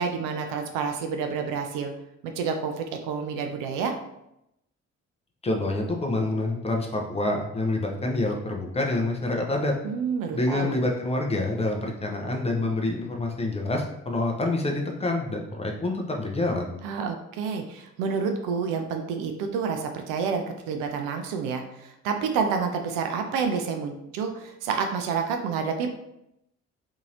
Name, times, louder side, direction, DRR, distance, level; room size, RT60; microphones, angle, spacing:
voice 1, 0.0-1.9 2.2-3.9 9.8-10.7 16.8-25.9, right 5 dB, 55° right, 5 dB, 0.5 m, -29 dB
voice 2, 5.4-9.7 10.3-16.8, left 2 dB, 15° left, 1 dB, 0.4 m, -27 dB
2.8 x 2.7 x 2.6 m, 0.83 s
figure-of-eight pair, 45°, 39 cm